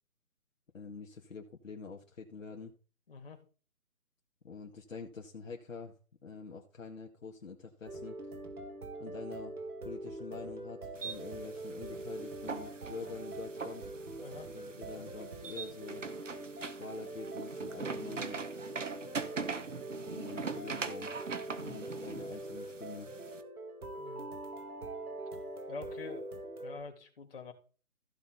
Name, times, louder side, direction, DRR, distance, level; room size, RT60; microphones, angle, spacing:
voice 1, 0.7-2.7 4.4-6.0 6.2-8.2 9.0-9.6 9.8-13.9 14.5-16.0 16.6-18.4 20.0-21.1 21.6-23.1, left 5 dB, 60° left, 1 dB, 2.1 m, -46 dB
voice 2, 3.1-3.4 14.2-14.5 14.9-15.0 21.5-21.8 24.0-24.3 25.7-26.3 26.6-27.5, left 4 dB, 40° left, 2 dB, 3.3 m, -46 dB
sound 1, 7.9-26.8, right 2 dB, 80° right, 2.2 m, -43 dB
sound 2, 10.9-23.4, right 5 dB, 55° right, 1.5 m, -42 dB
15.5 x 6.1 x 4.1 m, 0.37 s
hypercardioid pair, 170°, 44 cm